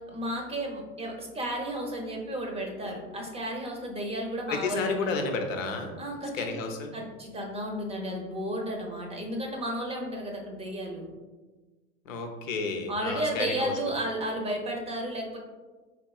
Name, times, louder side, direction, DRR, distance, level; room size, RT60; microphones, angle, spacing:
voice 1, 0.0-5.2 6.0-6.5 6.9-11.1 12.9-15.4, right 1 dB, 15° right, 1 dB, 0.5 m, -33 dB
voice 2, 4.5-5.9 6.3-6.9 12.1-13.7, left 4 dB, 85° left, 4 dB, 0.7 m, -31 dB
4.2 x 3.0 x 2.3 m, 1.3 s
hypercardioid pair, 100°, 38 cm